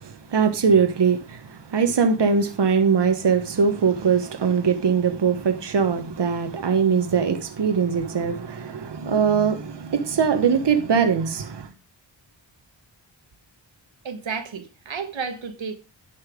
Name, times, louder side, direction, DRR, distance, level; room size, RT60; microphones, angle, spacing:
voice 1, 0.0-11.7, right 6 dB, 65° right, 1.2 m, -21 dB
voice 2, 14.0-15.8, right 5 dB, 85° right, 1.3 m, -32 dB
10.0 x 5.7 x 5.0 m
wide cardioid pair, 75°, 45 cm